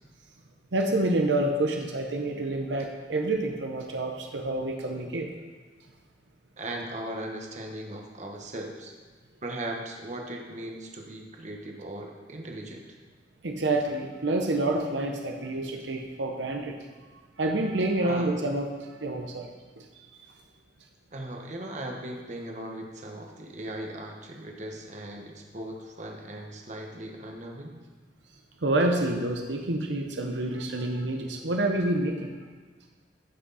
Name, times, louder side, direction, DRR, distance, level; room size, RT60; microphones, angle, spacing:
voice 1, 0.7-5.3 13.4-16.8 17.1-19.5 19.8-20.3 28.6-32.3, right 2 dB, 80° right, 3 dB, 0.9 m, -28 dB
voice 2, 6.6-8.9 9.4-12.8 18.0-18.3 21.1-27.7, right 1 dB, 40° right, 1 dB, 1.3 m, -38 dB
15.5 x 6.2 x 4.2 m, 1.4 s
head